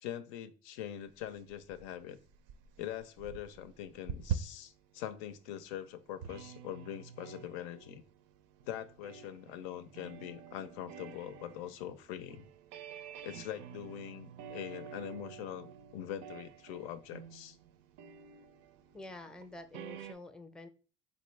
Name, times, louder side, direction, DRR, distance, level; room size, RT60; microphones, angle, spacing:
voice 1, 0.0-2.2 2.8-8.0 8.7-12.5 13.2-17.6, left 11 dB, 80° left, 12 dB, 0.5 m, -43 dB
sound 1, 1.0-20.1, right 7 dB, 75° right, 0.5 m, -47 dB
voice 2, 18.9-20.7, left 2 dB, ahead, 10 dB, 0.5 m, -48 dB
3.4 x 2.6 x 3.2 m, 0.36 s
supercardioid pair, 70°, 30 cm